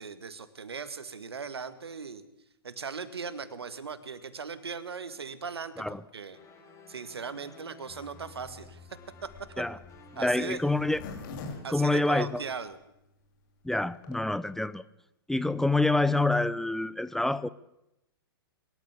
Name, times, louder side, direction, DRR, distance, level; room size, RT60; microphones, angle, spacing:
voice 1, 0.0-2.2 2.6-6.4 6.9-9.6 10.2-10.6 11.6-12.8, right 5 dB, 80° right, 13 dB, 1.9 m, -39 dB
sound 1, 6.3-11.6, left 4 dB, 25° left, 7.2 m, -52 dB
Zipper (clothing), 8.4-12.7 13.2-13.3 13.5-13.6 13.8-14.2, left 4 dB, 50° left, 5.2 m, -44 dB
voice 2, 10.1-11.0 11.7-12.4 13.6-14.8 15.3-17.5, left 2 dB, 5° left, 16 dB, 0.6 m, -27 dB
24.0 x 13.0 x 8.3 m, 0.87 s
hypercardioid pair, 115°, 13 cm